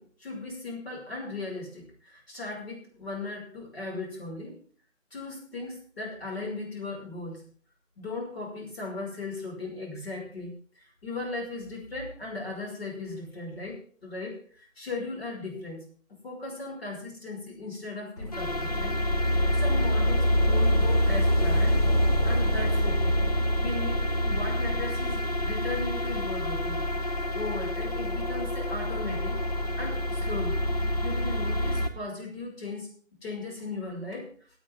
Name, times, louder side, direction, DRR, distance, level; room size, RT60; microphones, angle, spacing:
voice 1, 0.0-4.6 5.1-7.5 8.0-19.0 19.5-21.8 22.2-23.2 23.6-26.9 27.3-29.4 29.8-30.6 31.0-32.9 33.2-34.3, left 3 dB, 50° left, -1 dB, 5.7 m, -37 dB
sound 1, 18.2-31.9, equal, 30° left, 1.0 m, -26 dB
25.0 x 8.9 x 3.6 m, 0.43 s
figure-of-eight pair, 160°, 40 cm